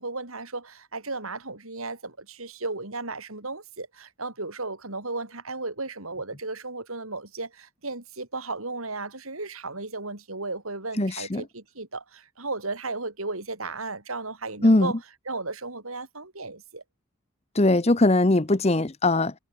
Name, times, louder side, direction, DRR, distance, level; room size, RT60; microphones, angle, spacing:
voice 1, 0.0-14.9 15.3-16.8, right 3 dB, 85° right, 6.2 m, -35 dB
voice 2, 11.0-11.4 14.6-14.9 17.5-19.3, left 2 dB, 30° left, 0.9 m, -20 dB
head